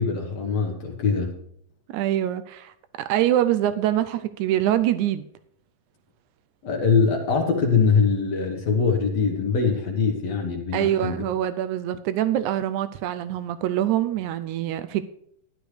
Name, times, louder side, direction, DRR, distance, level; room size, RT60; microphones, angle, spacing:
voice 1, 0.0-1.4 6.6-11.2, left 5 dB, 60° left, 2 dB, 2.0 m, -23 dB
voice 2, 1.9-5.3 10.7-15.0, right 12 dB, 85° right, 12 dB, 1.7 m, -24 dB
13.5 x 11.0 x 3.3 m, 0.68 s
omnidirectional pair, 4.0 m